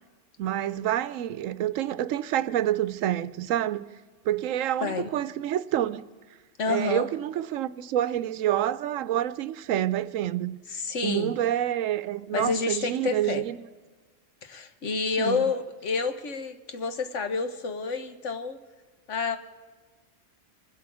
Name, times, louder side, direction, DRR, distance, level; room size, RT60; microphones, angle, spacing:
voice 1, 0.4-3.8 4.2-6.0 6.7-10.6 11.0-13.6 15.2-15.5, right 12 dB, 85° right, 1.0 m, -28 dB
voice 2, 6.6-7.1 10.7-11.4 12.3-13.4 14.4-18.6 19.1-19.4, left 4 dB, 70° left, 1.4 m, -29 dB
23.5 x 8.3 x 6.2 m
omnidirectional pair, 1.3 m